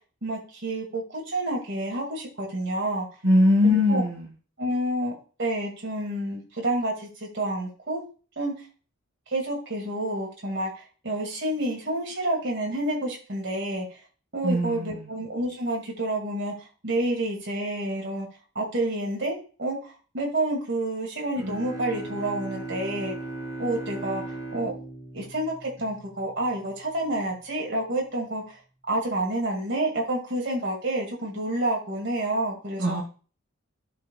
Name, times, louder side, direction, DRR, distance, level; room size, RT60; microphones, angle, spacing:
voice 1, 0.2-3.1 3.6-4.0 4.6-5.1 5.4-8.0 8.4-8.5 9.3-14.0 14.3-16.5 16.8-18.3 18.6-23.1 23.6-24.2 24.5-24.7 25.1-28.6 28.9-33.0, right 1 dB, 55° right, -1 dB, 2.1 m, -29 dB
voice 2, 3.2-4.3 14.4-15.1 32.8-33.0, left 1 dB, 80° right, 1 dB, 1.9 m, -21 dB
Bowed string instrument, 21.4-26.5, right 2 dB, 15° right, 1.6 m, -37 dB
12.5 x 4.6 x 2.3 m, 0.37 s
head